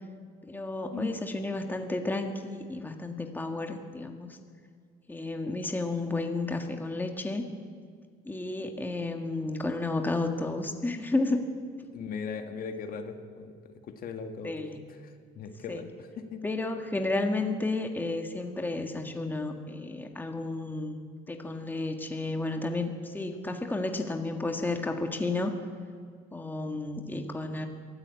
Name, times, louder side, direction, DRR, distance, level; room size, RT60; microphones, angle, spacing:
voice 1, 0.4-4.3 5.1-7.5 8.3-11.5 14.4-14.8 15.7-15.8 16.4-21.0 21.3-25.5 26.3-27.7, left 2 dB, 10° left, 4 dB, 1.8 m, -32 dB
voice 2, 11.9-16.4, left 5 dB, 60° left, 6 dB, 1.8 m, -39 dB
23.0 x 14.0 x 8.5 m, 2.1 s
cardioid pair, 110°, 17 cm